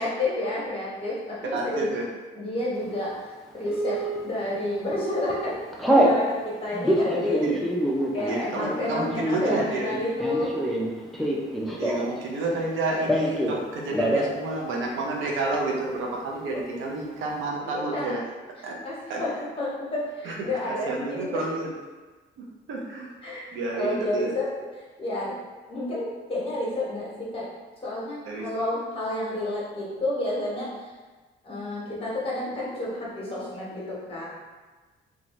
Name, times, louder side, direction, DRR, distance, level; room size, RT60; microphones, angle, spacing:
voice 1, 0.0-2.0 2.3-7.4 8.1-10.5 17.6-18.1 18.8-21.4 23.2-24.7 25.0-25.3 25.7-27.5 27.8-30.9 31.4-34.3, left 1 dB, 25° left, -6 dB, 1.2 m, -30 dB
voice 2, 1.5-2.1 7.4-7.5 8.3-9.9 11.8-18.2 18.6-18.8 19.1-19.2 20.2-20.4 20.7-21.7 22.4-23.1 23.5-24.3 28.3-28.5, right 2 dB, 75° right, -1 dB, 0.6 m, -30 dB
Telephone, 3.7-4.2 4.7-5.0 5.3-6.2 6.7-12.2 12.5-13.6 13.9-14.3 14.6-14.7 15.0-15.6, right 1 dB, ahead, 0.4 m, -25 dB
2.7 x 2.4 x 3.0 m, 1.3 s
cardioid pair, 90°, 20 cm